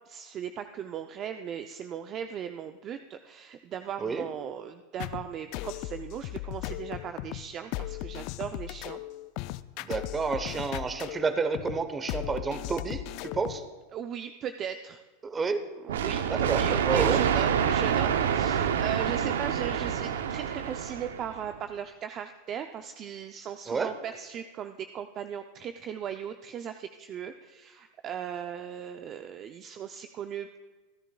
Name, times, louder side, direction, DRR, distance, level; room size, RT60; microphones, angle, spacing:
voice 1, 0.1-9.0 13.9-15.0 15.8-30.6, right 8 dB, 40° right, 8 dB, 0.5 m, -38 dB
sound 1, 5.0-13.7, left 17 dB, 55° left, 0.4 m, -37 dB
voice 2, 9.8-13.6 15.2-15.6 16.3-17.2 23.7-23.9, right 4 dB, 20° right, 10 dB, 1.0 m, -30 dB
sound 2, 15.9-21.5, right 8 dB, 85° right, 0.7 m, -27 dB
26.5 x 10.0 x 2.3 m, 1.3 s
hypercardioid pair, 110°, 0 cm